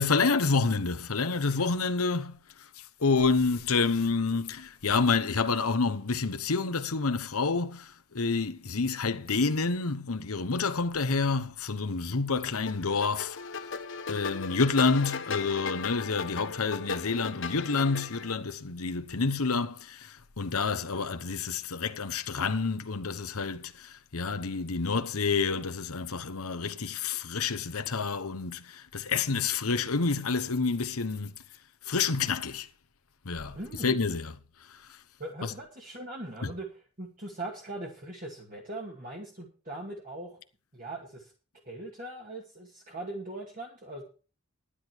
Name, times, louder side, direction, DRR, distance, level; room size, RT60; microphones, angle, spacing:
voice 1, 0.0-2.3 2.8-13.4 14.1-31.3 31.9-32.7 33.2-33.6 33.8-34.3 34.7-34.8 35.4-35.5 36.4-36.5, left 4 dB, 90° left, 1.1 m, -28 dB
sound 1, 12.7-18.3, left 5 dB, 55° left, 1.0 m, -37 dB
voice 2, 33.5-34.2 35.2-40.4 40.7-41.3 41.6-44.0, right 2 dB, 40° right, 2.2 m, -40 dB
12.5 x 10.5 x 4.6 m
head